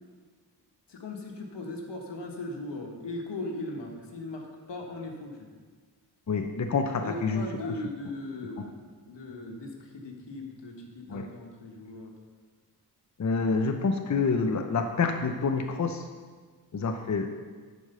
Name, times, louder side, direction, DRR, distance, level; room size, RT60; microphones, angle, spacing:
voice 1, 0.9-5.5 7.0-12.1, left 2 dB, 85° left, 1 dB, 1.6 m, -38 dB
voice 2, 6.3-7.4 11.1-11.2 13.2-16.0 16.7-17.3, left 4 dB, 45° left, 5 dB, 0.8 m, -27 dB
11.0 x 4.9 x 6.8 m, 1.5 s
wide cardioid pair, 85°, 41 cm